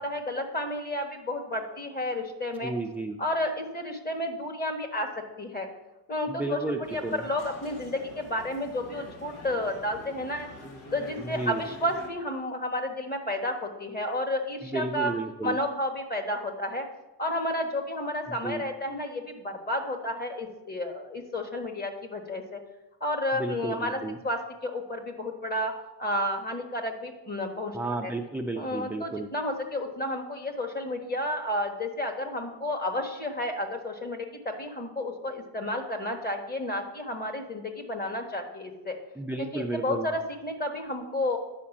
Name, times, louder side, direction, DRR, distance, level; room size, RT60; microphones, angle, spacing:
voice 1, 0.0-2.7 3.2-5.1 5.4-5.7 6.1-10.5 10.9-15.1 15.4-16.8 17.2-22.6 23.0-24.0 24.2-25.7 26.0-27.8 28.0-28.1 28.6-39.0 39.5-41.4, left 1 dB, 25° left, 3 dB, 1.4 m, -31 dB
voice 2, 2.6-3.2 6.3-7.3 11.2-11.7 14.6-15.6 18.3-18.6 23.3-24.2 27.7-29.3 39.2-40.1, right 2 dB, 5° right, 2 dB, 0.3 m, -33 dB
sound 1, 6.8-12.1, left 1 dB, 80° left, 1.8 m, -45 dB
9.8 x 5.0 x 7.2 m, 1.0 s
wide cardioid pair, 150°, 40 cm